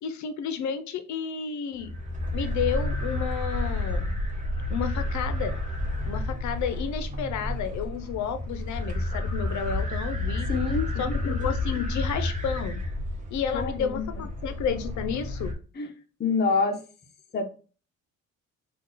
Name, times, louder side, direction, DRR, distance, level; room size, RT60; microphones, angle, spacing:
voice 1, 0.0-1.9 2.3-4.2 4.7-5.6 6.1-10.5 11.0-12.8 13.3-15.5, left 7 dB, 70° left, 9 dB, 0.7 m, -31 dB
sound 1, 1.8-15.5, left 1 dB, 25° right, 1.1 m, -30 dB
voice 2, 10.5-11.2 13.5-14.1 15.8-15.9 16.2-16.8 17.3-17.4, left 4 dB, 35° left, 4 dB, 0.7 m, -26 dB
3.7 x 2.4 x 3.9 m, 0.37 s
cardioid pair, 90°, 30 cm